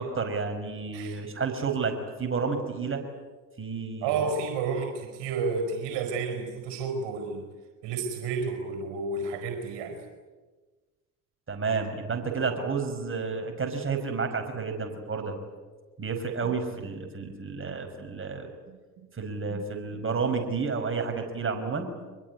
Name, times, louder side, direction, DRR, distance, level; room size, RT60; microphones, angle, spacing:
voice 1, 0.0-3.0 3.6-4.2 11.5-15.3 16.0-18.5 19.1-21.9, right 5 dB, 25° right, 4 dB, 5.6 m, -31 dB
voice 2, 0.9-1.2 4.0-7.4 7.8-10.0 17.2-17.3 17.6-17.7 19.5-19.6, right 4 dB, 65° right, 6 dB, 4.9 m, -31 dB
24.0 x 21.5 x 9.7 m, 1.3 s
hypercardioid pair, 65°, 46 cm